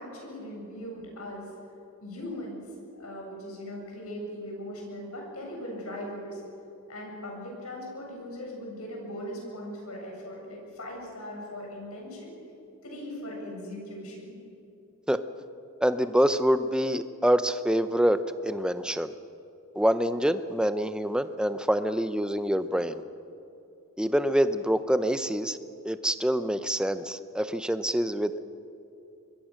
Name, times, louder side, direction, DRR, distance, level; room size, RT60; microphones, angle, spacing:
voice 1, 0.0-1.4 2.0-2.6 3.0-6.4 6.9-12.4 12.8-14.3, equal, 90° left, -1 dB, 7.7 m, -39 dB
voice 2, 15.8-19.1 19.7-23.0 24.0-25.6 25.8-28.4, equal, 5° right, 11 dB, 0.7 m, -26 dB
25.0 x 22.0 x 6.5 m, 2.7 s
head